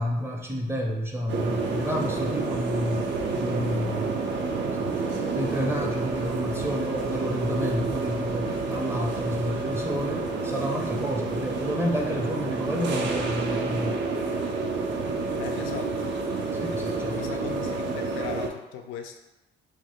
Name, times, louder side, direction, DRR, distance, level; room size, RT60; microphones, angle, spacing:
voice 1, 0.0-4.4 4.8-5.0 5.3-14.0 16.5-17.2, equal, 10° right, 0 dB, 0.5 m, -30 dB
sound 1, 1.3-18.5, right 3 dB, 65° right, 0.5 m, -29 dB
voice 2, 15.4-16.1 17.1-19.2, left 7 dB, 85° left, 5 dB, 0.4 m, -38 dB
2.5 x 2.3 x 3.5 m, 0.99 s
cardioid pair, 90°, 20 cm